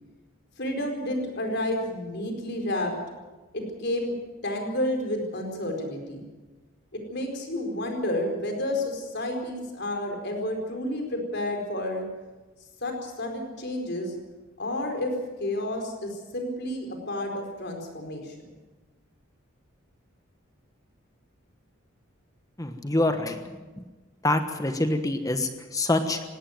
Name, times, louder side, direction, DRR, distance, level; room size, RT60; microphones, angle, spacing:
voice 1, 0.6-3.0 3.5-4.1 4.4-6.2 6.9-12.1 12.8-14.1 14.6-15.1 15.4-18.3, left 1 dB, 55° left, 3 dB, 4.6 m, -30 dB
voice 2, 22.6-23.4 23.8-23.9 24.2-26.3, left 2 dB, 15° left, 7 dB, 1.2 m, -26 dB
19.0 x 16.5 x 9.3 m, 1.2 s
head